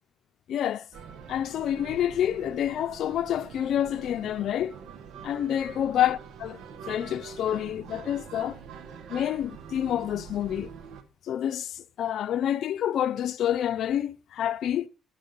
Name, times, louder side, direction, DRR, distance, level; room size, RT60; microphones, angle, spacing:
voice 1, 0.5-0.8 1.3-4.7 5.2-8.6 9.1-10.7 11.3-14.9, left 10 dB, 75° left, 0.5 m, -28 dB
sound 1, 0.9-11.0, right 6 dB, 75° right, 1.3 m, -44 dB
12.0 x 7.4 x 5.4 m
cardioid pair, 90°, 0 cm